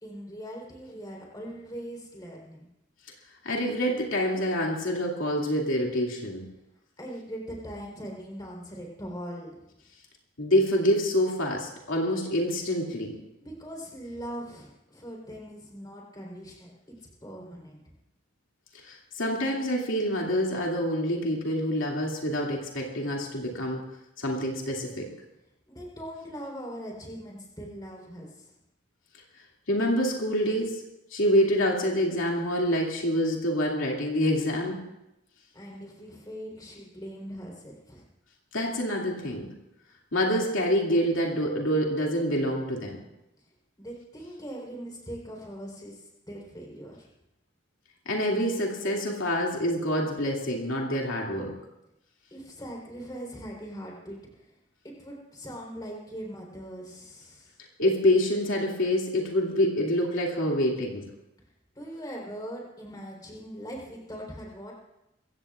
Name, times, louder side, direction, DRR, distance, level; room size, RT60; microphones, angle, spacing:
voice 1, 0.0-2.7 7.0-9.6 13.4-16.7 17.2-17.8 25.7-28.5 35.5-38.0 43.8-47.1 52.3-54.5 54.8-57.5 61.8-64.7, equal, 20° left, -2 dB, 3.8 m, -41 dB
voice 2, 3.4-6.4 10.4-13.2 18.8-23.8 24.2-25.1 29.7-30.8 31.1-34.8 38.5-39.5 40.1-43.0 48.1-51.6 57.8-61.1, equal, 85° left, -1 dB, 2.5 m, -26 dB
23.5 x 16.0 x 2.5 m, 0.88 s
head